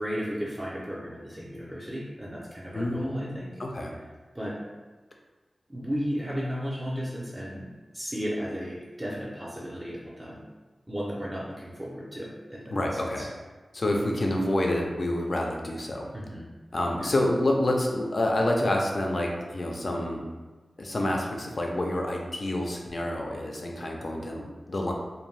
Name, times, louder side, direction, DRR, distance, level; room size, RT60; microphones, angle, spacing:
voice 1, 0.0-3.5 4.3-4.6 5.7-10.5 10.9-12.7 13.2-13.3 16.1-16.5 17.0-17.1, equal, 20° right, -6 dB, 0.5 m, -34 dB
voice 2, 2.7-3.9 12.7-13.3 13.7-16.1 16.7-20.2 20.8-24.9, left 1 dB, 50° left, 0 dB, 0.4 m, -28 dB
2.6 x 2.1 x 3.1 m, 1.3 s
wide cardioid pair, 90°, 0 cm